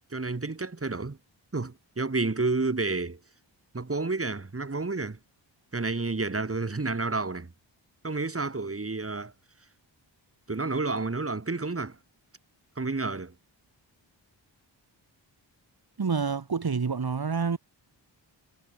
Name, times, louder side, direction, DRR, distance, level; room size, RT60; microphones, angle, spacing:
voice 1, 0.1-1.2 1.5-3.2 3.7-5.2 5.7-7.5 8.0-9.3 10.5-12.0 12.8-13.3, right 3 dB, 30° right, 5.5 m, -30 dB
voice 2, 16.0-17.6, right 5 dB, 50° right, 3.9 m, -28 dB
wide cardioid pair, 145°, 46 cm